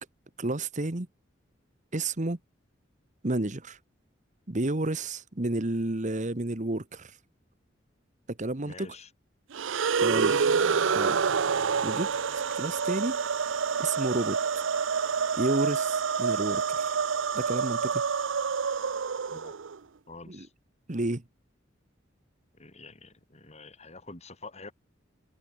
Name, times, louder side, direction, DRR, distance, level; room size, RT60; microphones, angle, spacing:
voice 1, 0.4-1.1 1.9-2.4 3.2-3.8 4.5-7.1 8.3-9.0 10.0-10.4 10.9-11.2 11.8-13.2 13.8-14.6 15.4-16.9 17.3-18.0 20.3-20.5 20.9-21.2, right 2 dB, 40° right, 1.3 m, -31 dB
voice 2, 8.7-9.1 10.0-10.5 19.3-19.5 20.1-20.5 22.5-24.7, left 3 dB, 35° left, 3.9 m, -47 dB
sound 1, 9.5-19.8, right 6 dB, 85° right, 0.7 m, -27 dB
head